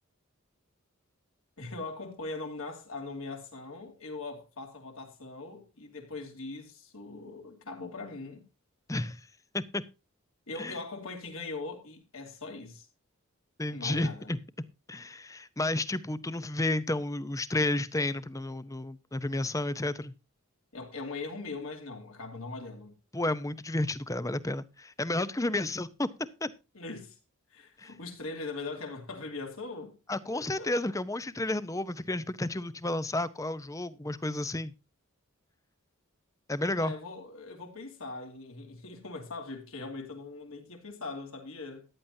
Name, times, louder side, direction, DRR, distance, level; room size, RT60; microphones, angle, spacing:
voice 1, 1.6-8.5 10.5-12.9 13.7-14.3 20.7-22.9 26.7-27.2 27.5-29.9 30.3-30.7 36.8-41.9, left 3 dB, 70° left, 2.9 m, -41 dB
voice 2, 8.9-9.3 9.5-9.8 10.6-10.8 13.6-14.4 14.9-20.1 23.1-26.1 26.4-26.5 27.8-27.9 30.1-34.7 36.5-36.9, left 2 dB, 15° left, 0.7 m, -31 dB
14.5 x 10.5 x 2.7 m
head